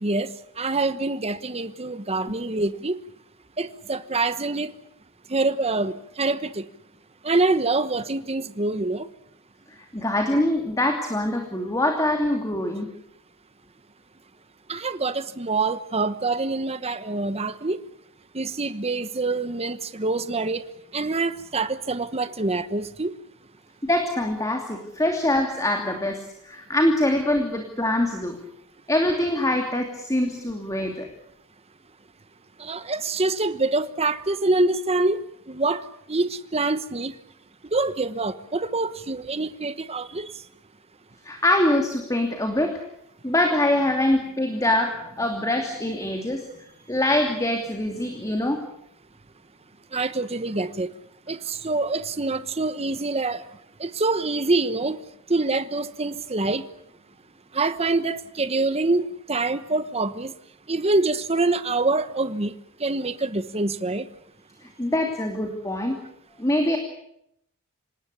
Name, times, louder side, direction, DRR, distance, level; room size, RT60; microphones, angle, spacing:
voice 1, 0.0-3.0 3.6-4.7 5.3-6.6 7.2-9.1 14.7-17.8 18.3-20.6 20.9-23.1 32.6-37.1 37.7-40.3 49.9-50.9 51.3-53.4 53.8-55.0 55.3-56.7 57.5-60.3 60.7-62.5 62.8-64.1, right 3 dB, 30° right, 12 dB, 1.1 m, -25 dB
voice 2, 9.9-12.9 23.8-28.4 28.9-31.1 41.2-42.8 43.2-46.4 46.9-48.6 64.6-66.0 66.4-66.8, left 1 dB, 15° left, 3 dB, 2.7 m, -24 dB
26.5 x 19.5 x 8.4 m, 0.75 s
head